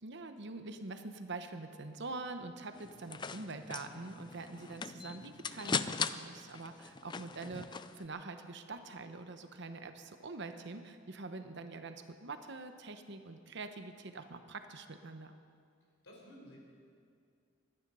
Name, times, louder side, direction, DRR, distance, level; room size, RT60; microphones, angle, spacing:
voice 1, 0.0-15.3, right 3 dB, 55° right, 8 dB, 1.0 m, -45 dB
sound 1, 2.7-8.0, left 5 dB, 20° left, 0.3 m, -40 dB
voice 2, 7.2-7.5 16.0-16.6, equal, 65° left, -2 dB, 4.8 m, -55 dB
23.5 x 10.0 x 5.5 m, 2.3 s
head